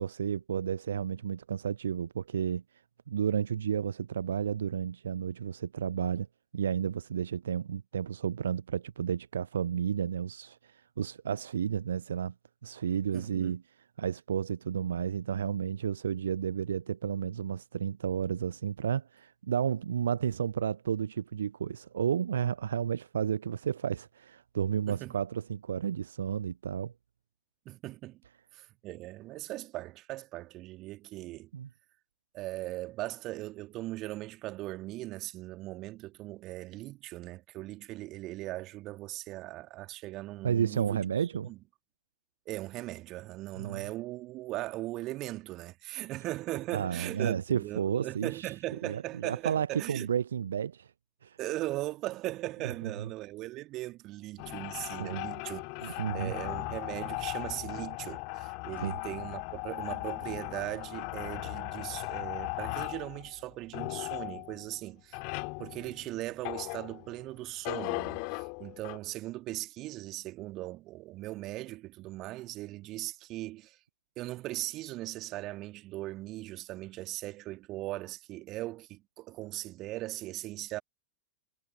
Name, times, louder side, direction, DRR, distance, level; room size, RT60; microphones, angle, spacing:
voice 1, 0.0-2.6 3.1-6.3 6.5-12.3 12.6-13.6 14.0-26.9 31.5-31.7 40.4-41.5 43.6-43.9 46.7-48.5 48.8-50.9 51.2-51.4 53.0-53.1 55.0-55.2 55.8-56.3 58.8-59.0, right 8 dB, 65° right, 0.4 m, -32 dB
voice 2, 13.1-13.5 24.9-25.1 27.7-28.2 28.5-31.5 32.3-41.0 41.4-41.6 42.5-50.1 51.4-65.2 65.6-73.8 74.2-80.8, right 17 dB, 35° right, 1.9 m, -39 dB
sound 1, 54.4-67.2 67.6-69.0, left 40 dB or more, 45° left, 2.0 m, -38 dB
figure-of-eight pair, 90°, 0 cm